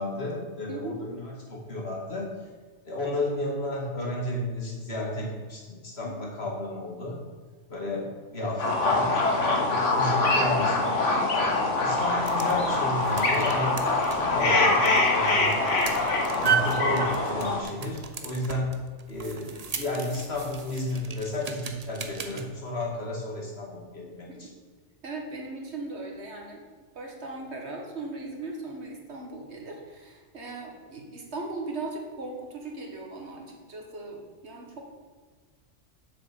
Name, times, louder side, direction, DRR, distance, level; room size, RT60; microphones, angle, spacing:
voice 1, 0.0-2.3 2.8-7.2 7.7-15.5 16.4-18.7 19.1-24.5, left 1 dB, 55° left, -2 dB, 2.4 m, -32 dB
sound 1, 8.6-17.6, left 2 dB, 75° left, 1.8 m, -24 dB
sound 2, 12.0-22.4, right 6 dB, 35° right, 0.8 m, -35 dB
voice 2, 15.2-15.6 24.3-24.5 25.0-26.6 27.0-34.8, right 2 dB, 65° right, 1 dB, 1.9 m, -38 dB
7.7 x 6.9 x 6.8 m, 1.4 s
omnidirectional pair, 1.2 m